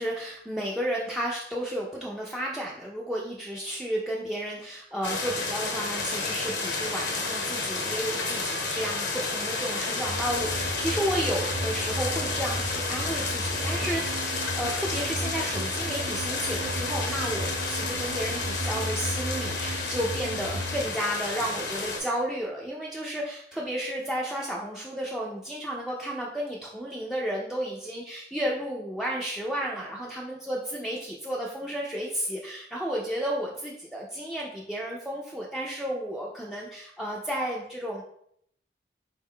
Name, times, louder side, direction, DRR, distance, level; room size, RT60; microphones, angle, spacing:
voice 1, 0.0-38.0, equal, ahead, -5 dB, 0.3 m, -32 dB
sound 1, 5.0-22.0, left 3 dB, 80° left, 0.8 m, -31 dB
sound 2, 10.1-20.9, right 1 dB, 85° right, 0.5 m, -35 dB
4.2 x 2.2 x 3.6 m, 0.70 s
head